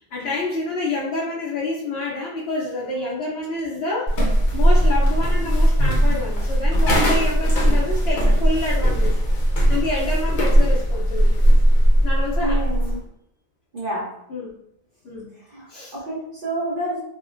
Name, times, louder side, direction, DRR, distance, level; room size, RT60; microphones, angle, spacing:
voice 1, 0.1-9.2 9.7-11.3 12.0-12.6 14.3-14.5 15.0-15.3 15.7-15.9, left 2 dB, 90° left, -7 dB, 1.0 m, -28 dB
sound 1, 4.1-13.0, equal, 55° left, 0.8 m, -18 dB
voice 2, 12.4-13.0 13.7-14.1 15.4-17.0, right 1 dB, 55° right, -9 dB, 1.0 m, -29 dB
3.5 x 2.1 x 2.4 m, 0.74 s
omnidirectional pair, 1.0 m